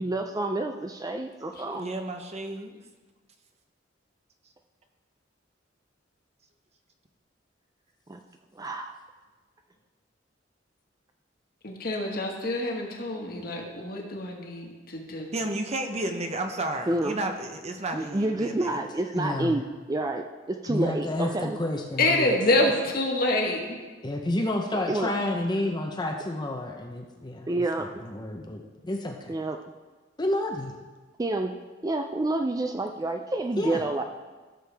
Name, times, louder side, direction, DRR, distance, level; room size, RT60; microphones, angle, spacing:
voice 1, 0.0-1.9 8.1-8.2 8.6-9.0 16.9-17.2 17.9-19.6 19.9-21.6 24.9-25.1 27.5-27.9 29.3-29.6 31.2-31.5 31.8-34.0, right 2 dB, 20° right, 5 dB, 0.4 m, -28 dB
voice 2, 1.7-2.8 15.3-18.7, right 2 dB, 35° right, 5 dB, 0.8 m, -32 dB
voice 3, 11.6-15.3 22.0-23.6, left 2 dB, 50° left, 0 dB, 1.6 m, -26 dB
voice 4, 19.2-19.6 20.7-22.4 24.0-27.5 27.8-29.3 30.2-30.7 33.6-33.8, left 1 dB, 25° left, 2 dB, 0.7 m, -30 dB
15.5 x 6.8 x 3.4 m, 1.3 s
head